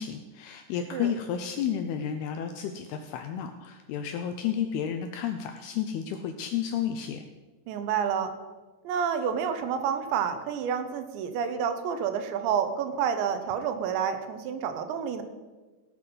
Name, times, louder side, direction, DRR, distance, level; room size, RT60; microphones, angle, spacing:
voice 1, 0.0-7.2, left 8 dB, 85° left, 6 dB, 2.3 m, -32 dB
voice 2, 7.7-8.3 8.8-15.2, right 7 dB, 80° right, 8 dB, 3.2 m, -29 dB
17.5 x 7.9 x 5.4 m, 1.3 s
omnidirectional pair, 5.2 m